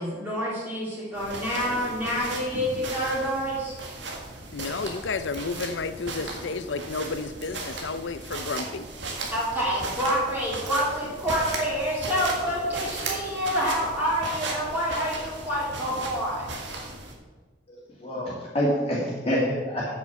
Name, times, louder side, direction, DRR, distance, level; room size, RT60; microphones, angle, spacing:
voice 1, 0.0-3.8 9.3-16.6, equal, 10° right, -9 dB, 2.7 m, -27 dB
sound 1, 1.1-17.1, right 3 dB, 85° right, 1.9 m, -36 dB
voice 2, 4.5-8.9, left 4 dB, 80° left, 12 dB, 0.6 m, -31 dB
voice 3, 17.7-19.9, equal, 35° left, -5 dB, 2.0 m, -27 dB
8.5 x 6.3 x 7.1 m, 1.4 s
head